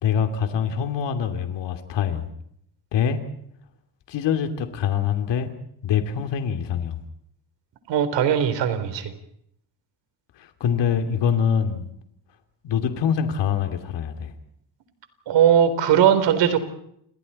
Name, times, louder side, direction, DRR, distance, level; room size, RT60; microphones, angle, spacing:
voice 1, 0.0-2.3 2.9-3.2 4.1-5.5 5.8-7.0 10.4-11.9 12.6-14.3, left 7 dB, 80° left, 6 dB, 3.0 m, -24 dB
voice 2, 7.9-9.1 15.3-16.6, right 9 dB, 85° right, 10 dB, 3.9 m, -19 dB
29.5 x 28.0 x 4.3 m, 0.72 s
cardioid pair, 120°, 42 cm